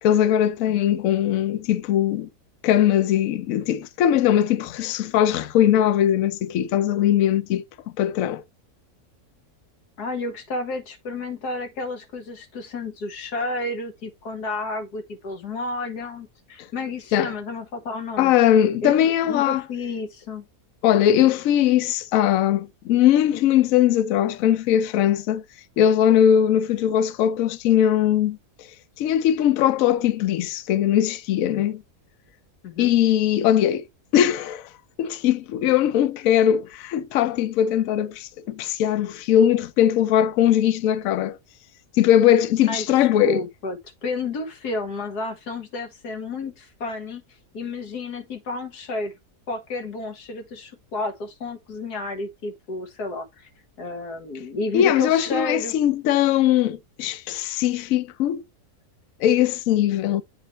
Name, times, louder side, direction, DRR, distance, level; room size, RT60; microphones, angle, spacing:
voice 1, 0.0-2.3 2.6-7.6 8.0-8.4 17.1-17.3 18.2-19.6 20.8-25.4 25.8-28.4 29.0-31.8 32.8-33.8 34.1-34.7 35.0-41.4 42.0-43.4 54.7-58.4 59.2-60.2, left 10 dB, 65° left, 1.0 m, -20 dB
voice 2, 10.0-18.3 18.8-20.5 32.6-32.9 42.7-47.2 47.5-49.1 49.5-53.5 53.8-55.8 59.9-60.1, left 3 dB, 90° left, 1.9 m, -31 dB
8.2 x 3.1 x 4.2 m
omnidirectional pair, 1.6 m